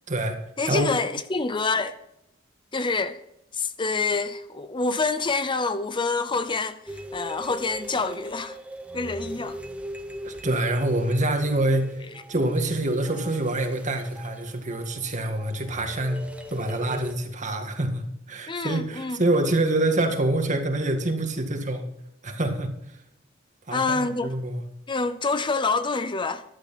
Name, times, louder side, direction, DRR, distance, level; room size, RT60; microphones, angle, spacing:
voice 1, 0.1-0.4 0.6-0.9 10.2-12.0 12.3-21.9 22.2-23.0 23.7-24.6, right 1 dB, 40° right, 1.9 m, -26 dB
voice 2, 0.6-1.9 2.7-3.2 3.5-8.6 8.9-9.6 18.5-19.2 23.7-24.3 24.9-26.4, left 3 dB, 25° left, 0.6 m, -27 dB
sound 1, 6.9-17.1, right 1 dB, 5° right, 1.1 m, -39 dB
14.5 x 11.5 x 4.2 m
head